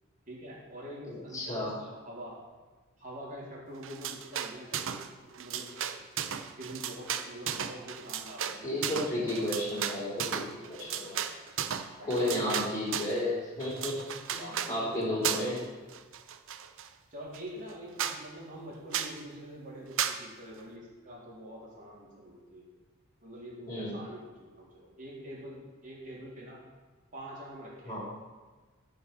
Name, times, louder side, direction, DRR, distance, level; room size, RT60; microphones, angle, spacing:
voice 1, 0.3-2.4 3.0-5.7 6.5-9.2 11.8-12.6 14.4-15.7 17.1-22.6 23.2-26.6 27.1-28.0, equal, 40° right, -5 dB, 3.5 m, -45 dB
voice 2, 1.1-1.7 8.6-11.2 12.0-14.0 14.3-14.4 14.7-15.6 23.7-24.0 27.9-28.1, left 1 dB, 15° left, -7 dB, 3.4 m, -32 dB
sound 1, 3.8-5.1 5.3-13.2 13.6-14.7 15.2-15.6 15.9-16.9 17.3-17.4 17.7-17.8 18.0-18.2 18.9-19.2 20.0-20.2, right 9 dB, 65° right, 0.7 m, -35 dB
13.5 x 5.4 x 6.9 m, 1.3 s
head